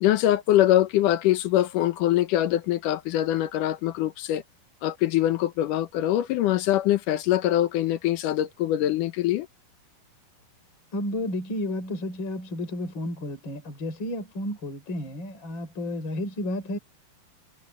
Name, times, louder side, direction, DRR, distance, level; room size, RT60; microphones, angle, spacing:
voice 1, 0.0-4.4 4.8-9.5, left 13 dB, 70° left, 2.1 m, -23 dB
voice 2, 10.9-16.8, left 1 dB, 30° left, 4.8 m, -32 dB
omnidirectional pair, 4.7 m